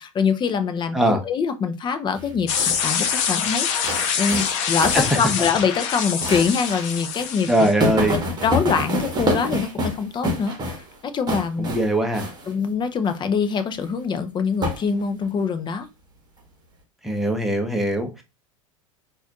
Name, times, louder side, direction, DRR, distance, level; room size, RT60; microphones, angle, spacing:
voice 1, 0.0-7.7 8.1-11.7 12.5-15.9, left 6 dB, 25° left, 0.6 m, -24 dB
sound 1, 2.1-2.9 3.8-5.2 5.5-5.6 6.2-6.9 7.2-7.3 7.8-11.0 11.3-11.9 12.1-12.5 14.6-15.2, equal, 25° right, 1.4 m, -27 dB
sound 2, 2.5-7.9, left 7 dB, 65° left, 0.8 m, -25 dB
voice 2, 7.5-8.1 11.6-12.2 17.0-18.2, right 1 dB, ahead, 1.0 m, -21 dB
4.0 x 2.6 x 2.8 m
hypercardioid pair, 90°, 17 cm